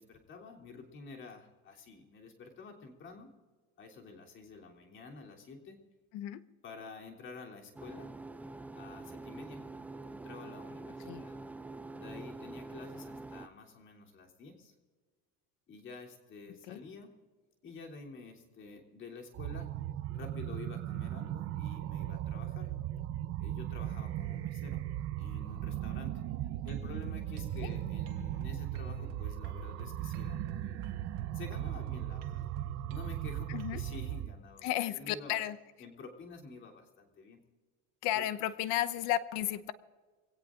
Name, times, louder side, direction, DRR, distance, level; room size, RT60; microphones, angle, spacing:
voice 1, 0.0-3.3 3.8-5.8 6.6-8.1 8.7-9.6 10.1-11.4 11.9-14.7 15.7-17.1 17.6-19.7 20.1-22.7 23.4-24.8 25.2-26.2 26.6-30.9 31.3-32.4 32.9-35.4 35.8-37.4 38.1-38.3, left 4 dB, 40° left, 1 dB, 3.2 m, -49 dB
sound 1, 7.8-13.5, right 3 dB, 5° right, 0.4 m, -45 dB
sound 2, 19.3-34.3, right 12 dB, 50° right, 0.8 m, -38 dB
sound 3, 26.7-34.2, right 6 dB, 85° right, 1.6 m, -47 dB
voice 2, 33.5-33.8 34.6-35.6 38.0-39.7, left 13 dB, 70° left, 13 dB, 0.9 m, -33 dB
24.5 x 17.5 x 2.5 m, 1.4 s
cardioid pair, 130°, 29 cm